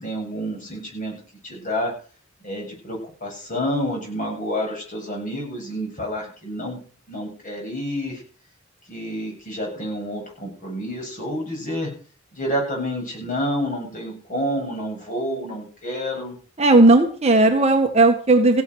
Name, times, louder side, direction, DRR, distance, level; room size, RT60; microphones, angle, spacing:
voice 1, 0.0-1.9 2.4-6.8 7.1-8.2 8.9-11.9 12.3-16.4, equal, 40° left, 0 dB, 7.9 m, -29 dB
voice 2, 16.6-18.6, right 2 dB, 30° right, 4 dB, 1.7 m, -15 dB
16.0 x 9.8 x 6.4 m, 0.42 s
head